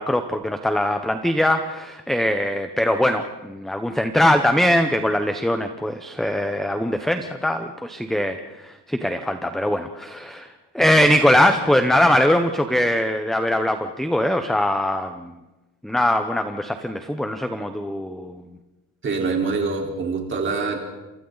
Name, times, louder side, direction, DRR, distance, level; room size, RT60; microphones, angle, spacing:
voice 1, 0.0-10.5 10.7-15.3 15.8-18.3, left 1 dB, ahead, 7 dB, 0.8 m, -21 dB
voice 2, 19.0-20.8, right 4 dB, 30° right, 1 dB, 4.2 m, -24 dB
29.0 x 27.0 x 4.0 m, 1.0 s
cardioid pair, 170°, 42 cm